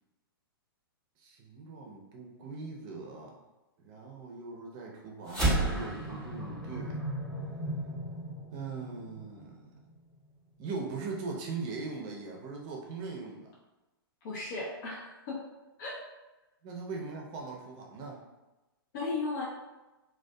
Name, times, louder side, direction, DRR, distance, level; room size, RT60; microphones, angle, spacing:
voice 1, 1.2-3.4 3.8-7.0 8.5-9.6 10.6-13.5 16.6-18.2, right 4 dB, 35° right, -1 dB, 0.5 m, -40 dB
sound 1, 5.3-9.9, right 1 dB, 5° left, 0.7 m, -33 dB
voice 2, 14.2-15.4 15.8-15.9 18.9-19.4, left 3 dB, 50° left, -4 dB, 0.5 m, -35 dB
2.5 x 2.2 x 2.2 m, 1.1 s
hypercardioid pair, 120°, 13 cm